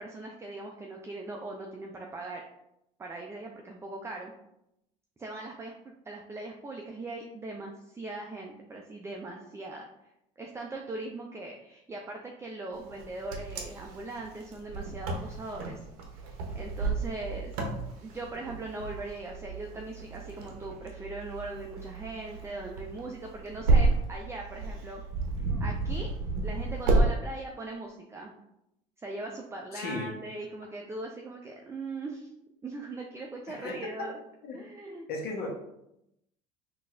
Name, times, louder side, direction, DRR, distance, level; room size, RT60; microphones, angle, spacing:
voice 1, 0.0-2.4 3.0-4.3 5.2-5.7 6.1-9.9 10.4-15.8 16.1-17.6 18.0-25.0 25.4-26.1 26.4-28.3 29.0-32.3 32.6-34.2 34.5-35.1, right 2 dB, 15° right, 0 dB, 0.4 m, -40 dB
Wind, 12.9-27.1, right 3 dB, 80° right, 0.7 m, -31 dB
voice 2, 29.7-30.1 33.5-33.8 34.4-34.6 35.1-35.5, left 3 dB, 55° left, 0 dB, 0.8 m, -35 dB
3.9 x 2.5 x 2.3 m, 0.83 s
supercardioid pair, 80°, 19 cm